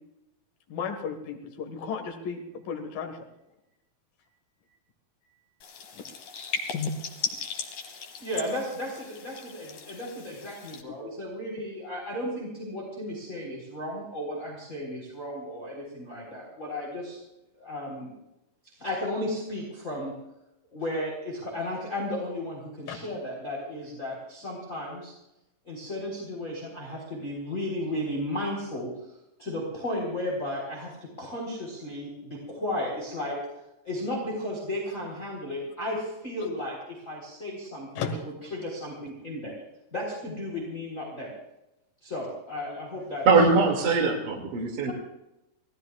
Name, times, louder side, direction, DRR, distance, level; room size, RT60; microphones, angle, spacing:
voice 1, 0.7-3.2 5.3-5.4 6.7-6.9 10.9-11.0 22.9-23.0 34.9-35.0 38.0-38.2, left 6 dB, 80° left, 3 dB, 3.4 m, -34 dB
sound 1, 5.6-10.8, left 5 dB, 65° left, 2.7 m, -37 dB
voice 2, 8.2-17.2 17.6-18.1 18.8-20.2 20.7-25.1 25.6-28.9 29.4-33.4 33.8-38.0 38.5-39.5 39.9-41.3 42.0-43.3 44.8-44.9, left 1 dB, 20° left, -3 dB, 4.1 m, -34 dB
voice 3, 43.3-44.9, right 4 dB, 70° right, -2 dB, 4.0 m, -21 dB
27.5 x 18.0 x 2.4 m, 0.89 s
omnidirectional pair, 4.0 m